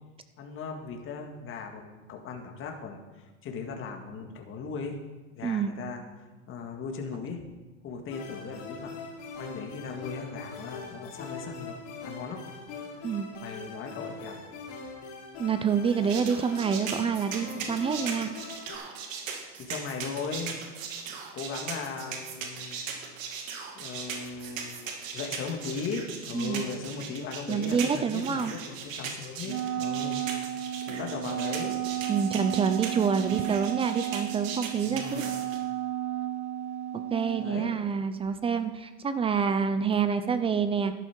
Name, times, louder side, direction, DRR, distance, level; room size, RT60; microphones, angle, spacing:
voice 1, 0.4-5.0 5.4-6.0 6.5-7.4 7.8-8.9 9.4-11.8 12.0-12.5 13.4-14.4 19.6-20.5 21.3-22.8 23.7-30.2 30.9-31.8 34.8-35.3 37.4-37.8, left 5 dB, 30° left, 2 dB, 2.0 m, -38 dB
sound 1, 8.1-18.8, left 4 dB, 50° left, 4.2 m, -42 dB
voice 2, 15.4-18.3 26.3-26.7 27.5-28.5 32.1-35.2 37.1-40.9, right 6 dB, 15° right, 11 dB, 0.4 m, -27 dB
sound 2, 16.1-35.6, right 6 dB, 85° right, 2.4 m, -38 dB
Wind instrument woodwind instrument, 29.4-37.6, right 11 dB, 40° right, 0.8 m, -33 dB
12.0 x 12.0 x 4.5 m, 1.2 s
supercardioid pair, 130°, 39 cm